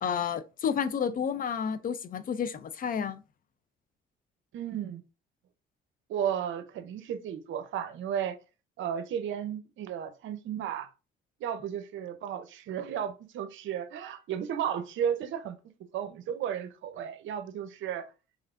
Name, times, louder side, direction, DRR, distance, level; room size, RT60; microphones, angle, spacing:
voice 1, 0.0-3.2, left 7 dB, 45° left, 0.4 m, -30 dB
voice 2, 4.5-5.0 6.1-8.4 8.8-10.9 11.4-18.1, right 9 dB, 75° right, 0.6 m, -34 dB
3.5 x 3.3 x 2.4 m
cardioid pair, 90°, 20 cm